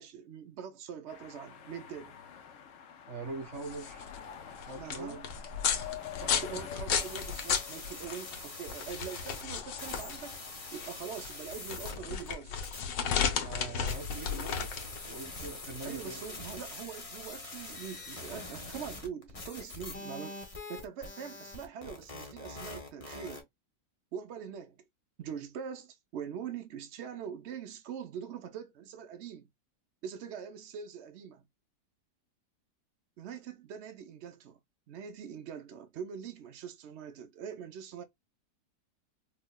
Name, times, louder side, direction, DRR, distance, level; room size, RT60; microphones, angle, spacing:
voice 1, 0.0-2.2 4.8-5.2 6.2-12.6 15.8-20.4 20.7-23.5 24.1-24.9 25.2-29.5 30.0-31.5 33.2-34.6 34.9-38.0, right 7 dB, 75° right, 0.6 m, -43 dB
sound 1, 1.1-11.4, left 8 dB, 65° left, 0.8 m, -47 dB
voice 2, 3.1-4.0 4.6-5.3 13.4-16.2, right 3 dB, 40° right, 1.6 m, -42 dB
sound 2, 3.4-18.0, left 7 dB, 90° left, 1.5 m, -35 dB
sound 3, 7.0-12.8 13.9-23.4, left 2 dB, 30° left, 0.7 m, -44 dB
4.6 x 2.2 x 2.2 m
omnidirectional pair, 1.9 m